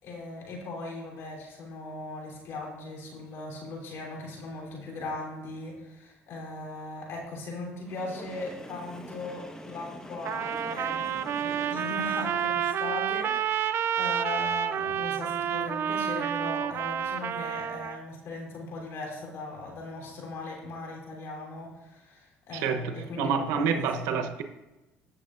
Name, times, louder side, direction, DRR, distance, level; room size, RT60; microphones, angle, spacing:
voice 1, 0.0-24.2, left 2 dB, 65° left, -1 dB, 3.3 m, -39 dB
Train, 7.8-12.8, left 1 dB, 15° left, 1.1 m, -45 dB
Trumpet, 10.2-18.0, right 9 dB, 55° right, 0.4 m, -29 dB
voice 2, 22.5-24.4, right 6 dB, 85° right, 6 dB, 0.8 m, -28 dB
15.0 x 6.8 x 2.5 m, 1.1 s
supercardioid pair, 85°, 5 cm